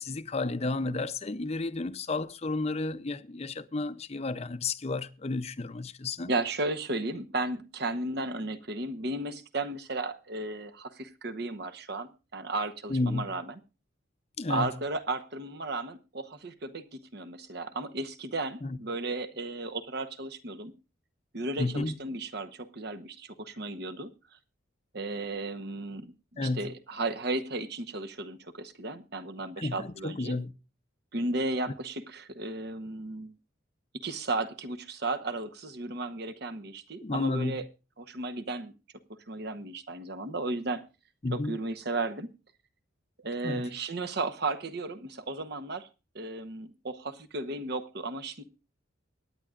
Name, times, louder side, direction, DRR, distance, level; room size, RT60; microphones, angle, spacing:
voice 1, 0.0-6.3 12.9-13.3 14.4-14.7 18.6-18.8 21.6-21.9 26.4-26.7 29.6-30.5 37.0-37.6 41.2-41.6 43.4-43.7, left 3 dB, 35° left, 0.6 m, -32 dB
voice 2, 6.3-13.6 14.5-20.7 21.3-24.1 24.9-30.4 31.1-33.3 34.0-37.6 38.0-38.7 39.3-40.8 41.3-42.3 43.2-45.9 46.1-48.4, right 2 dB, 55° right, 1.0 m, -34 dB
24.0 x 9.4 x 2.5 m
head